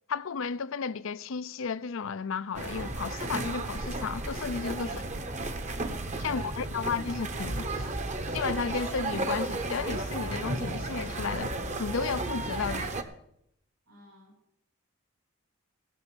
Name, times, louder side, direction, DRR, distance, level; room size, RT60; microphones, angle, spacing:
voice 1, 0.1-5.0 6.2-7.9 8.3-11.5 11.8-13.0, left 5 dB, 65° left, 0.5 m, -33 dB
sound 1, 2.5-13.0, right 2 dB, 35° right, 0.9 m, -33 dB
voice 2, 4.7-5.4 6.2-6.8 13.8-14.3, equal, 75° right, 6.8 m, -52 dB
16.5 x 6.3 x 8.4 m
head